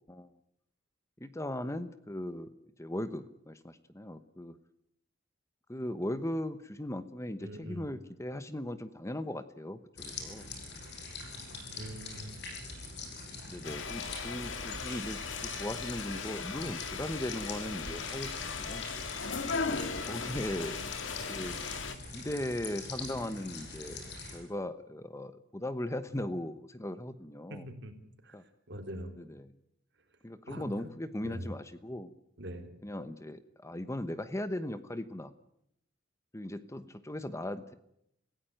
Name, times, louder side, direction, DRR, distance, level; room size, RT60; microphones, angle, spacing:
voice 1, 0.1-0.4 1.2-2.5 2.8-4.6 5.7-10.5 13.5-18.8 19.5-21.6 22.1-24.0 24.3-27.7 28.3-28.4 29.2-29.5 30.2-32.1 32.8-35.3 36.3-37.7, left 1 dB, 15° left, 12 dB, 1.0 m, -38 dB
voice 2, 7.4-7.8 11.7-12.3 27.5-27.9 28.2-28.3 28.7-29.1 30.5-30.9 31.2-31.4 32.4-32.7, equal, 60° right, 5 dB, 3.8 m, -42 dB
sound 1, 10.0-24.4, left 3 dB, 60° left, 7.0 m, -44 dB
sound 2, 13.6-21.9, left 5 dB, 85° left, 2.1 m, -38 dB
26.5 x 16.5 x 9.2 m, 0.77 s
head